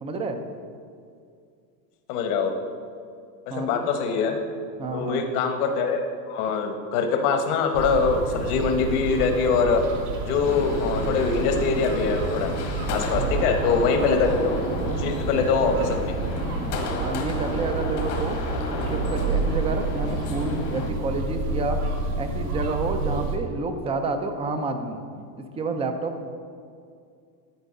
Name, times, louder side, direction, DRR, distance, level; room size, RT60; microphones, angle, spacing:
voice 1, 0.0-0.4 3.5-3.8 4.8-5.3 13.1-13.5 17.0-18.4 18.7-21.8 22.2-25.0 25.6-26.3, right 3 dB, 15° right, 7 dB, 0.4 m, -29 dB
voice 2, 2.1-2.6 3.5-4.4 4.9-9.8 10.2-12.5 12.9-14.6 15.0-16.1, left 5 dB, 70° left, 6 dB, 1.3 m, -23 dB
sound 1, 7.7-23.4, right 3 dB, 70° right, 1.6 m, -29 dB
sound 2, 10.4-20.9, left 3 dB, 85° left, 1.8 m, -32 dB
12.0 x 4.5 x 5.3 m, 2.3 s
supercardioid pair, 130°, 47 cm